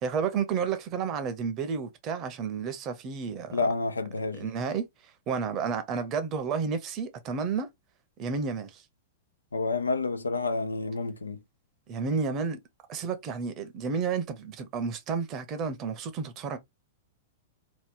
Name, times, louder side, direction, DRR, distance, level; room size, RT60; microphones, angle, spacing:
voice 1, 0.0-3.6 4.4-4.8 5.3-7.7 8.2-8.8 11.9-12.6 12.9-16.6, right 5 dB, 35° right, 0.8 m, -31 dB
voice 2, 3.5-4.5 9.5-11.4, left 3 dB, 85° left, 0.5 m, -29 dB
3.0 x 2.3 x 3.5 m
figure-of-eight pair, 105°, 0 cm